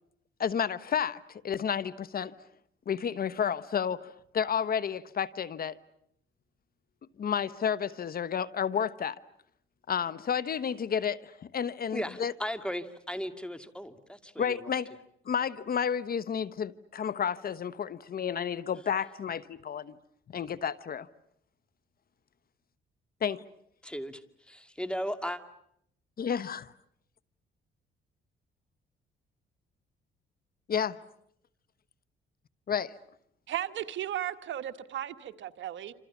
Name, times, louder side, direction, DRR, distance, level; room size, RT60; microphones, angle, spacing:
voice 1, 0.4-2.3 2.9-5.8 7.2-9.2 9.9-12.3 14.4-14.9 15.3-19.9 20.3-21.1 23.2-23.4 26.2-26.7 30.7-31.0 32.7-33.0, left 7 dB, 50° left, 1.0 m, -31 dB
voice 2, 11.9-14.7 23.8-24.2 24.5-25.4, equal, 5° left, 2.4 m, -36 dB
voice 3, 33.5-35.9, right 11 dB, 70° right, 1.5 m, -35 dB
28.0 x 27.0 x 7.1 m
cardioid pair, 90°, 20 cm